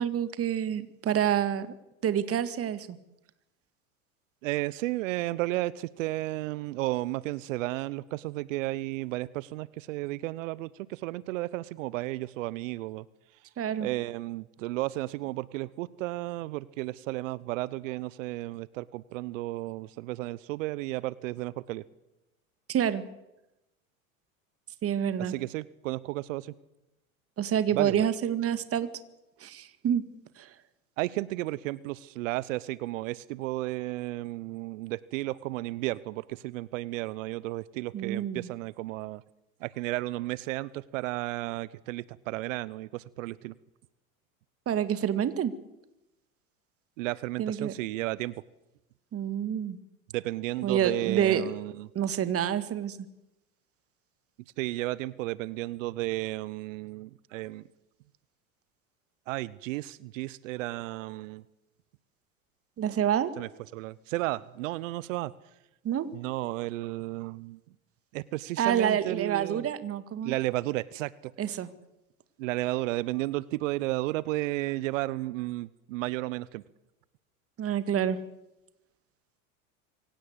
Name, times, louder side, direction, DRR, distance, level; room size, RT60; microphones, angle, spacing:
voice 1, 0.0-1.7 2.0-2.9 13.6-13.9 22.7-23.0 24.8-25.3 27.4-28.9 29.4-30.1 30.4-30.5 37.9-38.5 44.7-45.5 47.4-47.7 49.1-49.8 50.6-51.4 52.0-53.0 62.8-63.3 65.8-66.1 68.6-70.3 71.4-71.7 77.6-78.2, right 9 dB, 35° right, 13 dB, 1.9 m, -27 dB
voice 2, 4.4-13.0 13.8-21.8 25.2-26.5 27.7-28.0 31.0-39.2 39.6-43.5 47.0-48.4 50.1-51.9 54.6-57.6 59.3-61.4 63.4-65.3 66.1-67.6 68.1-69.7 70.2-71.3 72.4-76.6, right 18 dB, 65° right, 21 dB, 0.9 m, -33 dB
25.0 x 17.0 x 8.1 m, 0.94 s
hypercardioid pair, 90°, 41 cm